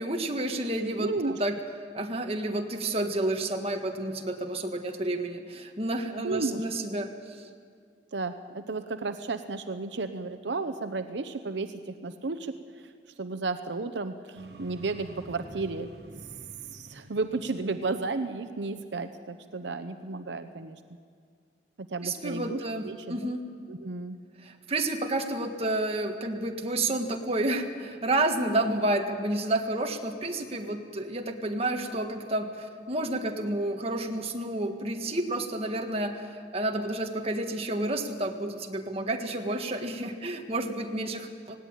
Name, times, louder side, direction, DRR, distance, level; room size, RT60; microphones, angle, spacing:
voice 1, 0.0-1.1 1.4-1.6 1.9-7.4 22.0-23.4 24.4-41.6, right 1 dB, 35° right, 4 dB, 1.6 m, -30 dB
voice 2, 1.0-1.4 6.2-6.6 8.1-12.9 13.2-15.9 16.7-20.8 21.8-23.2 23.7-24.2, right 3 dB, 80° right, 10 dB, 0.8 m, -33 dB
sound 1, 14.3-18.5, right 1 dB, 65° right, 1.5 m, -48 dB
18.5 x 17.0 x 8.9 m, 2.1 s
head